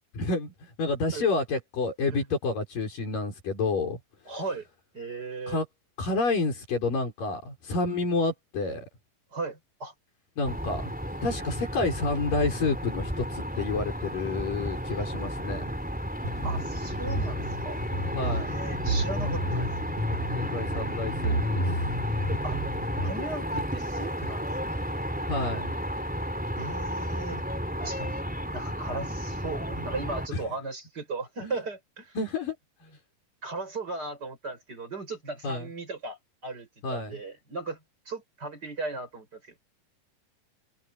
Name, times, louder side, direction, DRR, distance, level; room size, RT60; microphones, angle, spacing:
voice 1, 0.2-4.0 4.3-4.4 5.5-5.7 6.0-8.9 10.4-10.9 11.2-15.6 18.1-18.6 20.4-21.8 25.3-25.7 30.3-30.4 31.4-31.6 32.2-32.6 35.4-35.7 36.8-37.2, left 3 dB, 85° left, 7.9 m, -29 dB
voice 2, 4.3-4.7 4.9-5.6 9.3-9.9 16.4-17.8 18.2-19.9 22.4-22.6 23.0-24.8 26.6-27.4 27.8-28.3 28.5-32.2 33.4-36.2 36.4-37.8 38.1-39.6, right 3 dB, 30° right, 6.0 m, -37 dB
sound 1, 10.4-30.3, equal, 5° right, 3.4 m, -33 dB
sound 2, 16.2-23.1, equal, 60° right, 4.1 m, -31 dB
omnidirectional pair, 3.8 m